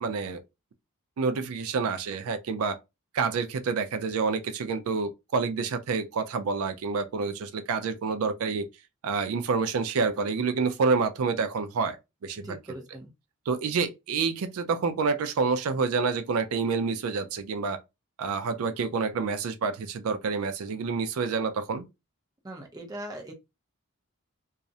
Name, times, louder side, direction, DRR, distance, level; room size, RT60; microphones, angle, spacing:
voice 1, 0.0-0.4 1.2-2.8 3.1-8.7 9.0-12.0 12.2-12.6 13.5-17.8 18.2-21.9, right 4 dB, 80° right, 0.4 m, -28 dB
voice 2, 12.4-13.1 22.4-23.3, right 1 dB, 15° right, 0.5 m, -40 dB
2.4 x 2.0 x 2.6 m
head